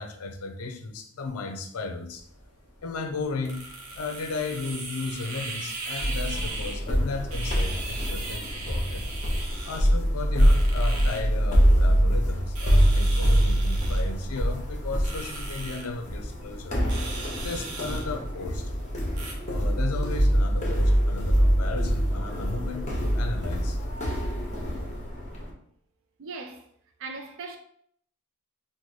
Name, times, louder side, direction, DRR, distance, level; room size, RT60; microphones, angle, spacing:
voice 1, 0.0-2.3 2.8-3.6 3.9-9.0 9.6-16.8 17.4-18.7 19.5-23.8, left 3 dB, 75° left, 0.5 m, -35 dB
sound 1, 2.2-19.3, right 3 dB, 85° right, 0.7 m, -40 dB
sound 2, 6.0-25.5, equal, 30° left, 0.8 m, -24 dB
voice 2, 26.2-26.7 27.0-27.6, right 4 dB, 60° right, 0.4 m, -39 dB
3.8 x 2.1 x 3.1 m
head